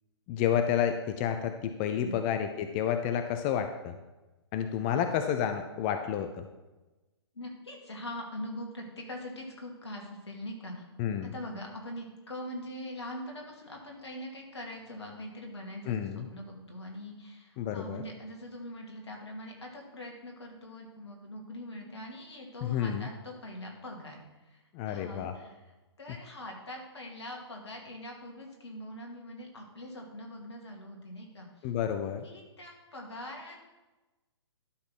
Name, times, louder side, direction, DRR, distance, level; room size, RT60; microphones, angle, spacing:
voice 1, 0.3-3.9 4.5-6.5 11.0-11.3 15.9-16.3 17.6-18.0 22.6-23.1 24.7-25.3 31.6-32.3, left 9 dB, 25° left, 8 dB, 0.4 m, -30 dB
voice 2, 7.3-10.8 11.2-25.7 26.0-31.7 32.2-33.6, left 1 dB, 70° left, 0 dB, 2.6 m, -43 dB
11.5 x 4.1 x 6.1 m, 1.1 s
figure-of-eight pair, 130°, 15 cm